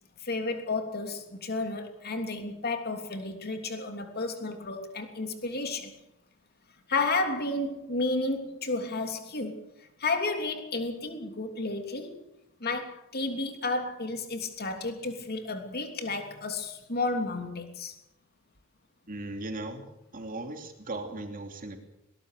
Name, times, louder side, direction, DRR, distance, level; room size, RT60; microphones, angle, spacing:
voice 1, 0.2-5.9 6.9-9.6 10.0-12.2 12.6-17.9, left 3 dB, 45° left, 3.2 m, -32 dB
voice 2, 19.1-19.8 20.1-21.8, right 2 dB, 40° right, 3.0 m, -37 dB
22.5 x 19.5 x 6.7 m
head